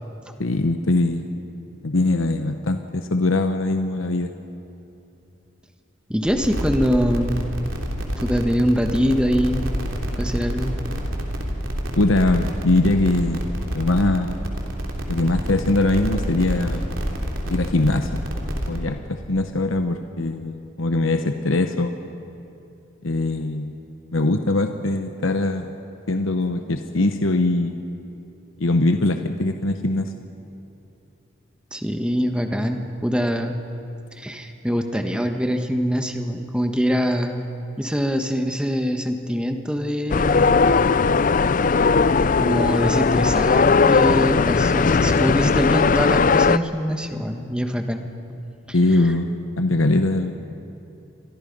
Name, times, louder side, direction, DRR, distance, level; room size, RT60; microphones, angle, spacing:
voice 1, 0.4-1.2 1.8-4.3 12.0-13.5 13.7-14.4 15.1-16.8 17.5-18.2 18.7-21.9 23.0-23.7 24.1-25.7 26.1-27.8 28.6-30.1 48.7-49.3 49.6-50.3, left 2 dB, 85° left, 6 dB, 1.0 m, -21 dB
voice 2, 6.1-7.4 8.2-9.7 10.2-10.7 31.7-33.6 34.2-37.5 37.8-40.7 42.4-48.1, equal, 5° right, 5 dB, 1.4 m, -23 dB
sound 1, 6.3-18.8, equal, 85° right, 3.3 m, -28 dB
sound 2, 40.1-46.6, left 4 dB, 40° left, 0.4 m, -18 dB
29.0 x 24.0 x 5.4 m, 2.8 s
head